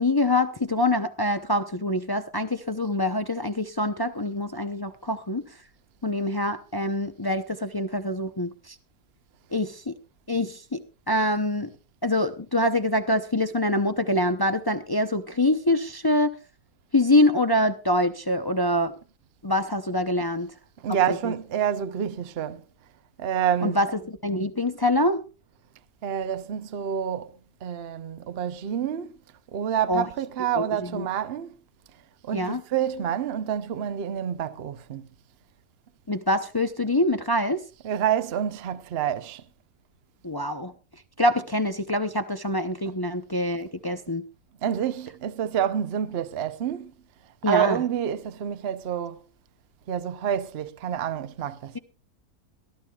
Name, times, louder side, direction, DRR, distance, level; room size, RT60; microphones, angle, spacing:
voice 1, 0.0-5.4 6.0-8.7 9.5-9.9 10.3-11.7 12.0-16.4 16.9-18.9 19.4-20.5 21.1-21.3 23.6-25.2 29.9-30.1 30.5-31.1 32.3-32.6 36.1-37.6 40.2-40.7 41.2-44.2 47.4-47.8, left 1 dB, 35° left, 0.3 m, -25 dB
voice 2, 20.8-22.6 23.2-23.8 26.0-27.3 27.6-29.1 29.5-31.5 32.2-35.1 37.8-39.4 42.9-43.0 44.6-46.9 47.4-49.2 49.9-51.8, right 9 dB, 50° right, 0.8 m, -28 dB
21.5 x 13.5 x 2.4 m
omnidirectional pair, 1.7 m